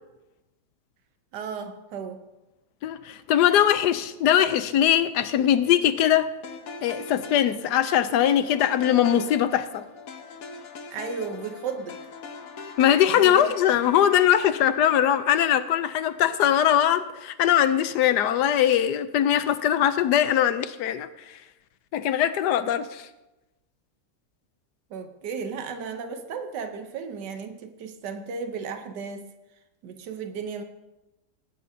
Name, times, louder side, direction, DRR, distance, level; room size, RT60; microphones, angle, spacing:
voice 1, 1.3-2.2 10.9-12.0 13.1-13.6 24.9-29.3 29.8-30.6, right 5 dB, 80° right, 7 dB, 1.5 m, -34 dB
voice 2, 2.8-6.3 6.8-9.8 12.8-21.3 21.9-23.1, left 10 dB, 80° left, 11 dB, 1.2 m, -21 dB
sound 1, 6.4-16.7, left 4 dB, 60° left, 1.2 m, -42 dB
18.5 x 9.5 x 2.7 m, 1.0 s
omnidirectional pair, 1.8 m